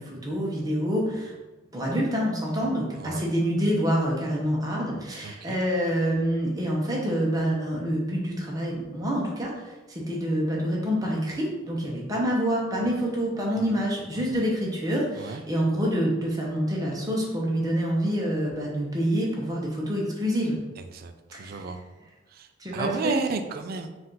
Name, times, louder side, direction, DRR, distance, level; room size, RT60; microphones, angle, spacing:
voice 1, 0.0-1.3 1.7-20.6 21.3-21.6 22.6-23.2, equal, 20° right, -3 dB, 0.8 m, -27 dB
voice 2, 2.9-3.3 5.2-5.6 14.3-14.4 15.2-15.4 20.9-21.1 21.4-21.8 22.3-22.5 22.7-23.9, right 4 dB, 50° right, 8 dB, 0.3 m, -32 dB
4.2 x 2.5 x 3.7 m, 1.1 s
head